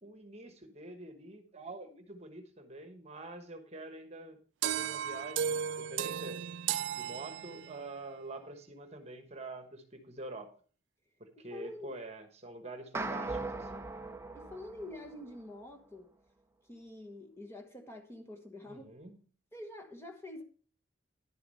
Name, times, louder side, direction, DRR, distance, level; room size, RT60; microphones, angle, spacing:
voice 1, 0.0-6.4 6.9-10.5 11.2-13.9 18.6-19.2, right 2 dB, 35° right, 1.2 m, -46 dB
sound 1, 4.6-7.9, right 9 dB, 70° right, 0.3 m, -35 dB
voice 2, 11.4-11.9 14.3-16.1 16.7-18.9 19.5-20.4, left 1 dB, 15° left, 1.1 m, -47 dB
sound 2, 12.9-15.4, right 2 dB, 15° right, 0.5 m, -39 dB
11.0 x 6.9 x 4.1 m
head